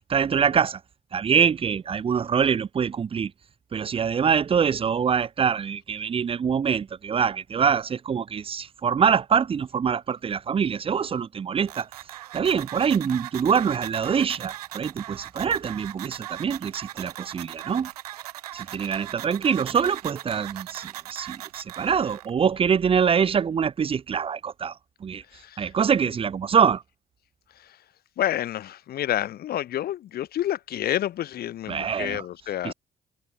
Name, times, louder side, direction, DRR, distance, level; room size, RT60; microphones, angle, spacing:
voice 1, 0.1-0.8 1.1-3.3 3.7-11.9 12.3-17.9 18.5-24.7 25.0-25.2 25.6-26.8 31.7-32.2 32.6-32.7, right 7 dB, 30° right, 0.5 m, -24 dB
sound 1, 11.7-22.3, right 14 dB, 80° right, 2.7 m, -39 dB
voice 2, 25.3-25.7 27.5-27.8 28.2-32.7, left 12 dB, 55° left, 0.9 m, -29 dB
figure-of-eight pair, 45°, 19 cm